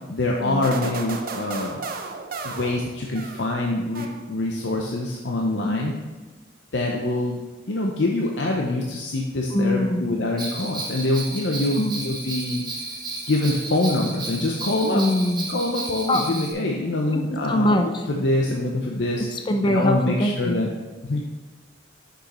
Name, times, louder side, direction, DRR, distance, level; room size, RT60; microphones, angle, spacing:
voice 1, 0.1-1.8 2.4-5.9 6.7-7.4 7.7-12.6 13.3-15.0 15.5-19.3 19.6-20.7 21.0-21.2, left 2 dB, 60° left, 0 dB, 0.6 m, -25 dB
sound 1, 0.6-3.6 3.9-4.6, right 4 dB, 45° right, 0.6 m, -34 dB
voice 2, 9.5-10.1 11.8-12.0 14.9-15.5 16.1-16.4 17.1-17.2 17.5-17.9 19.3-20.6, left 1 dB, 25° left, 5 dB, 0.4 m, -23 dB
Bell, 10.4-16.5, right 2 dB, 20° right, 1.0 m, -33 dB
6.2 x 5.7 x 4.2 m, 1.2 s
head